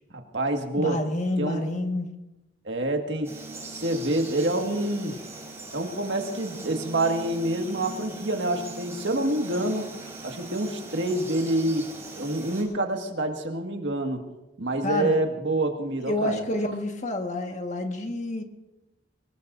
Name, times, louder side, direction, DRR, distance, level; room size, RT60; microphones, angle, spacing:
voice 1, 0.1-1.0 1.4-1.6 2.7-3.3 3.6-5.1 5.7-9.9 10.2-11.9 12.1-14.2 14.6-16.4, right 1 dB, 75° right, 3 dB, 1.9 m, -27 dB
voice 2, 0.7-2.1 14.8-15.2 16.0-18.4, left 1 dB, 40° left, 4 dB, 1.6 m, -28 dB
Frog, 3.2-12.6, right 2 dB, 15° right, 4.9 m, -40 dB
24.0 x 20.5 x 2.7 m, 0.96 s
head